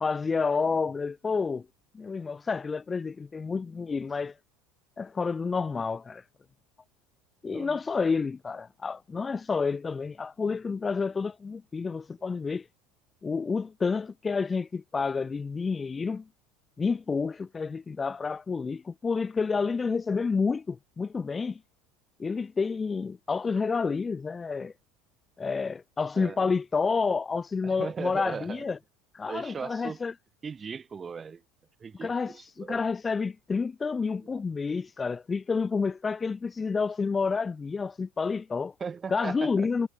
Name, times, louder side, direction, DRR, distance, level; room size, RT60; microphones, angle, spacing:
voice 1, 0.0-1.6 1.9-4.3 5.0-6.2 7.4-12.7 13.2-16.2 16.8-21.6 22.2-24.7 25.4-28.8 29.1-30.1 32.0-38.7 39.1-39.9, left 5 dB, 25° left, 0.7 m, -29 dB
voice 2, 7.5-7.8 26.2-26.5 27.6-28.7 29.3-30.0 30.4-31.4 31.8-32.8 34.3-34.4 38.8-39.7, right 6 dB, 30° right, 3.2 m, -38 dB
hypercardioid pair, 80°, 0 cm